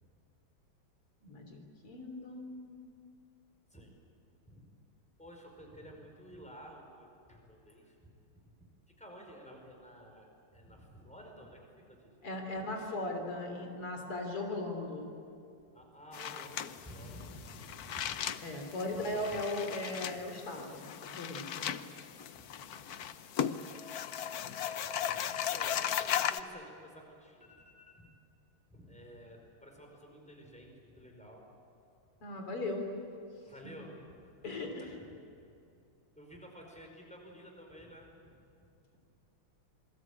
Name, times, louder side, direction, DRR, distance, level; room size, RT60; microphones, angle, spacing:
voice 1, 1.2-2.8 12.2-15.1 18.4-21.7 32.2-32.9 34.4-34.9, left 2 dB, 90° left, 3 dB, 4.5 m, -38 dB
voice 2, 5.2-8.1 8.5-8.7 9.0-10.3 10.5-11.6 11.9-12.3 15.7-18.4 18.9-19.5 21.9-23.2 23.6-23.9 24.8-28.1 28.7-31.5 33.4-35.1 36.2-38.4, equal, 5° left, 1 dB, 5.3 m, -53 dB
sound 1, 16.1-26.4, left 9 dB, 60° left, 1.0 m, -37 dB
27.5 x 21.5 x 8.8 m, 2.6 s
omnidirectional pair, 2.4 m